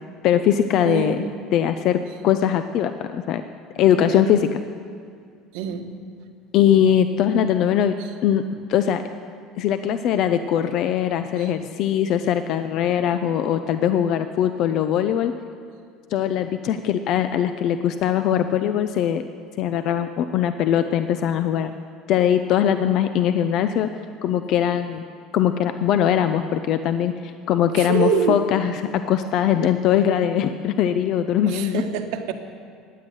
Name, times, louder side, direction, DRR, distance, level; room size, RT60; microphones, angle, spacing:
voice 1, 0.2-1.2 1.5-3.4 3.8-4.6 6.5-7.9 8.2-8.4 8.7-9.0 9.6-15.3 16.1-19.2 19.6-21.7 22.1-23.9 24.2-25.0 25.3-31.8, left 9 dB, 55° left, 9 dB, 0.6 m, -21 dB
voice 2, 0.8-1.3 4.0-4.3 5.5-5.9 11.4-11.5 27.8-28.4 31.5-32.3, right 7 dB, 80° right, 6 dB, 1.3 m, -25 dB
15.0 x 10.0 x 9.1 m, 2.2 s
cardioid pair, 125°, 0 cm